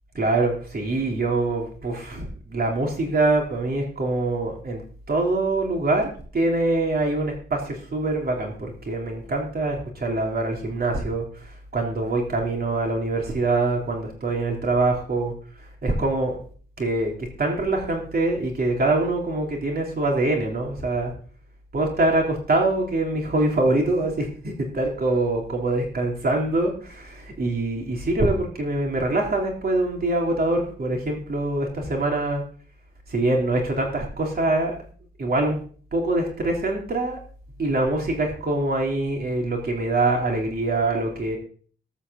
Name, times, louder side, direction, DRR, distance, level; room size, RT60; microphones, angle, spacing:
voice 1, 0.1-4.8 5.1-15.3 15.8-16.4 16.8-21.1 21.7-32.4 33.1-34.8 35.2-35.6 35.9-37.2 37.6-41.4, right 2 dB, 45° right, 0 dB, 3.2 m, -24 dB
14.0 x 5.5 x 7.4 m, 0.43 s
wide cardioid pair, 150°, 21 cm